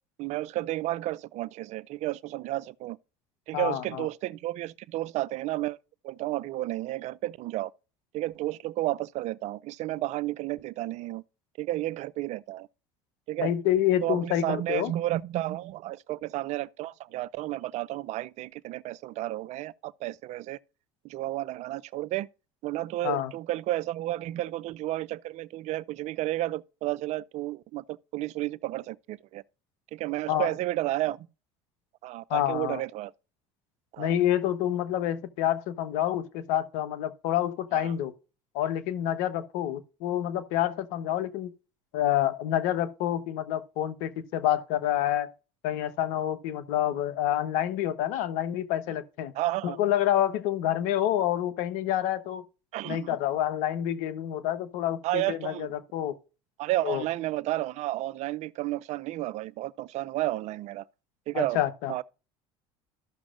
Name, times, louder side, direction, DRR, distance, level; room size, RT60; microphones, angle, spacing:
voice 1, 0.2-3.0 3.5-5.8 6.0-7.7 8.1-11.2 11.6-12.7 13.3-13.5 14.0-20.6 21.0-22.3 22.6-29.4 29.9-31.3 32.0-33.1 33.9-34.2 37.7-37.9 49.3-49.8 52.7-53.2 55.0-55.7 56.6-60.8 61.3-61.6 61.9-62.0, right 16 dB, 55° right, 0.4 m, -32 dB
voice 2, 3.5-4.1 13.4-14.9 23.0-23.3 30.3-30.5 32.3-32.8 34.0-38.1 38.5-41.5 41.9-45.3 45.6-49.3 49.6-52.4 52.8-56.1 56.8-57.0 61.3-61.9, left 11 dB, 70° left, 0.9 m, -28 dB
14.0 x 6.1 x 2.4 m
hypercardioid pair, 80°, 14 cm